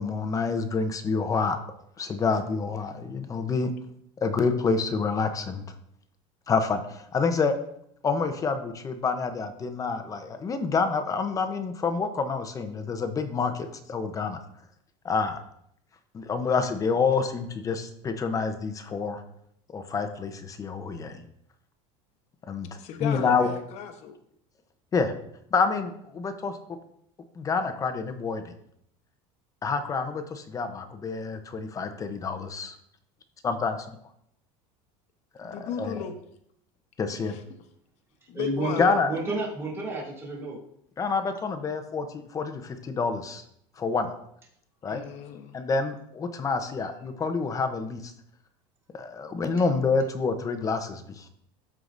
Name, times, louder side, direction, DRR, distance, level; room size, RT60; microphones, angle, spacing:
voice 1, 0.0-1.6 2.0-3.7 4.2-5.6 6.5-7.5 8.0-14.4 15.0-15.4 16.1-19.2 19.7-21.2 22.5-22.7 23.0-23.5 24.9-25.1 25.5-26.6 27.4-28.5 29.6-32.7 33.4-33.8 35.4-36.0 37.0-37.4 38.8-39.1 41.0-43.4 43.8-44.1 44.8-45.0 45.5-48.1 48.9-51.3, left 4 dB, 25° left, 8 dB, 0.7 m, -27 dB
voice 2, 22.8-24.2 35.4-36.2 37.2-37.4 38.3-39.0 44.8-45.6, left 7 dB, 50° left, 7 dB, 1.0 m, -35 dB
voice 3, 38.3-40.6, right 2 dB, 15° right, -4 dB, 2.6 m, -31 dB
13.0 x 4.7 x 2.6 m, 0.72 s
supercardioid pair, 135°, 14 cm